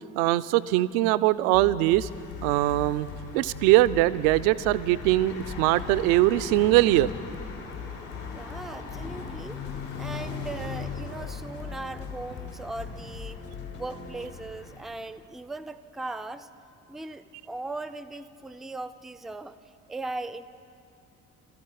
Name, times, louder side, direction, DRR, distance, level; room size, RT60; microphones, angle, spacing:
voice 1, 0.1-2.1 2.4-3.1 3.3-7.1, right 16 dB, 65° right, 16 dB, 0.6 m, -22 dB
sound 1, 1.5-13.9, left 9 dB, 55° left, 1.2 m, -41 dB
sound 2, 1.8-15.1, left 4 dB, 70° left, 3.8 m, -40 dB
voice 2, 8.3-9.6 10.0-13.4 13.7-16.5 16.9-19.6 19.9-20.4, right 2 dB, ahead, 13 dB, 0.4 m, -38 dB
sound 3, 9.0-14.4, left 2 dB, 90° left, 1.4 m, -45 dB
25.5 x 14.0 x 3.8 m, 2.6 s
figure-of-eight pair, 50°, 46 cm